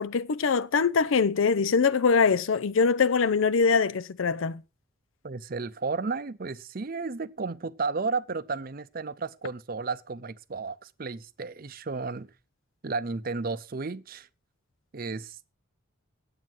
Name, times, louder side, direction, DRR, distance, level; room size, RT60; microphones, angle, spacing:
voice 1, 0.0-4.6, left 5 dB, 70° left, 0.5 m, -23 dB
voice 2, 5.2-12.3 12.8-14.3 14.9-15.5, right 4 dB, 45° right, 0.6 m, -33 dB
9.2 x 8.7 x 6.0 m
head